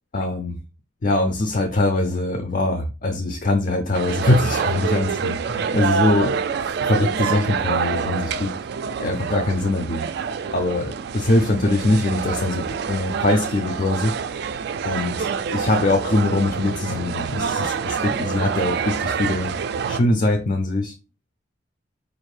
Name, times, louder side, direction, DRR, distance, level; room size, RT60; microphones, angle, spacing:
voice 1, 0.1-0.6 1.0-6.4 6.8-8.5 9.0-10.1 10.5-14.1 14.8-19.5 19.9-20.9, left 2 dB, 45° left, 5 dB, 0.5 m, -22 dB
sound 1, 3.9-20.0, right 6 dB, 55° right, 0.3 m, -26 dB
4.3 x 2.6 x 3.2 m, 0.31 s
head